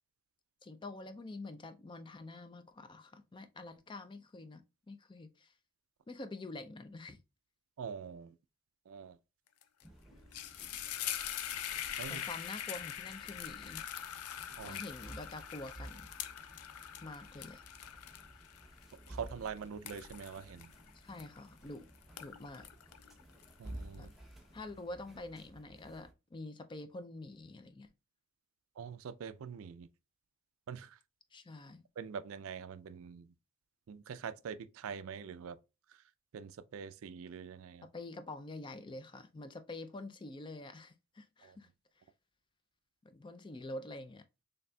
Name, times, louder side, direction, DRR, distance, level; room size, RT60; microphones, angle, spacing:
voice 1, 0.6-5.5 6.1-7.2 12.1-13.8 14.6-16.1 17.0-17.6 20.9-21.9 22.2-22.7 24.0-24.1 24.5-27.9 31.3-31.8 37.9-41.7 43.0-44.3, left 2 dB, 20° left, 0.3 m, -47 dB
voice 2, 7.8-8.4 8.9-9.2 12.0-12.2 14.6-14.8 19.1-20.7 23.6-24.1 28.8-29.9 30.7-31.0 32.0-33.3 33.9-35.6 35.9-36.0 36.3-37.9 41.4-41.6, right 6 dB, 65° right, 0.3 m, -44 dB
sound 1, 9.6-9.8 10.1-21.7 22.0-23.9, left 10 dB, 85° left, 0.4 m, -43 dB
sound 2, 9.8-26.1, right 1 dB, ahead, 0.7 m, -54 dB
4.0 x 3.3 x 2.2 m
head